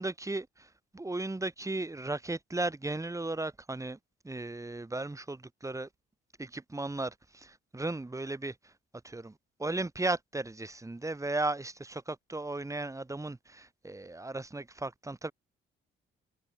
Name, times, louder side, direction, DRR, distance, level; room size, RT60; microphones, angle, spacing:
voice 1, 0.0-4.0 4.2-5.9 6.4-8.7 9.0-15.3, right 2 dB, 15° right, 5.4 m, -36 dB
cardioid pair, 90°, 20 cm